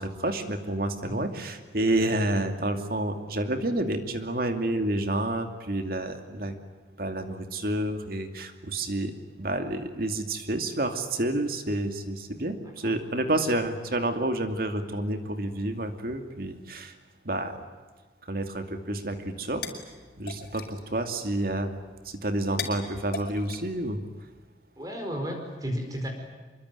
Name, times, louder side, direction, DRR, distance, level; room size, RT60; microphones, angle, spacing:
voice 1, 0.0-6.5 7.0-9.1 9.4-16.9 17.2-17.6 18.3-19.6 20.2-21.8 22.1-24.0, right 1 dB, 50° right, 7 dB, 2.5 m, -29 dB
sound 1, 19.1-24.5, left 5 dB, 50° left, 5.1 m, -42 dB
voice 2, 24.8-26.1, equal, 20° right, 3 dB, 4.7 m, -33 dB
25.5 x 23.5 x 9.5 m, 1.4 s
head